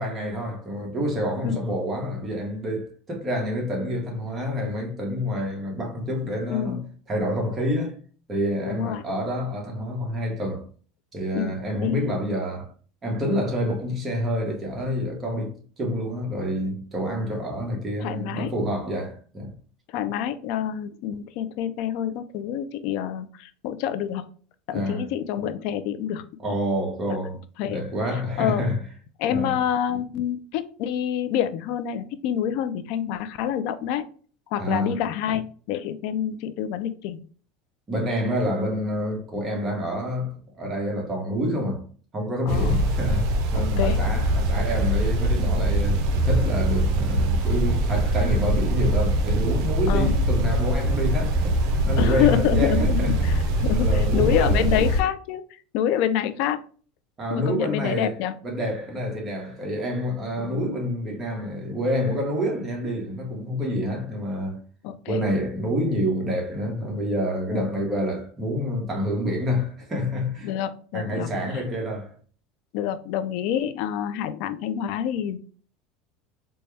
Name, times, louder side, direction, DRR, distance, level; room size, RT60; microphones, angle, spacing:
voice 1, 0.0-6.8 7.1-8.0 8.3-10.6 11.1-12.7 13.0-19.5 24.7-25.1 26.4-28.8 29.3-29.5 34.6-35.0 37.9-41.9 42.1-53.3 53.7-54.6 57.2-58.1 58.4-64.6 65.1-70.5 70.9-72.1, equal, 20° right, 1.2 m, -28 dB
voice 2, 6.5-6.8 8.6-9.0 11.3-12.0 18.0-18.5 19.9-24.2 24.7-26.2 27.6-27.8 28.4-28.6 29.2-34.1 34.5-37.2 42.5-42.8 43.5-44.0 49.9-50.2 52.0-55.4 55.7-56.6 57.3-58.3 60.4-60.6 64.8-65.2 67.5-67.7 70.4-71.3 72.7-75.4, left 10 dB, 65° left, 0.4 m, -27 dB
sound 1, 42.5-55.0, right 1 dB, 65° right, 0.6 m, -22 dB
4.1 x 2.2 x 3.3 m
supercardioid pair, 135°, 0 cm